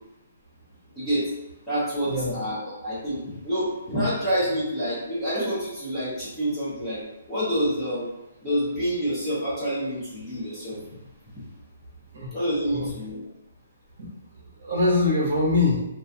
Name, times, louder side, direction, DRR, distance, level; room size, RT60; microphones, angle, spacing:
voice 1, 1.0-1.3 1.7-7.0 7.3-8.1 8.4-10.8 12.3-13.2, equal, 5° left, -12 dB, 0.6 m, -27 dB
voice 2, 14.6-15.8, left 2 dB, 50° right, -4 dB, 0.7 m, -23 dB
2.4 x 2.3 x 2.7 m, 0.94 s
hypercardioid pair, 180°, 0 cm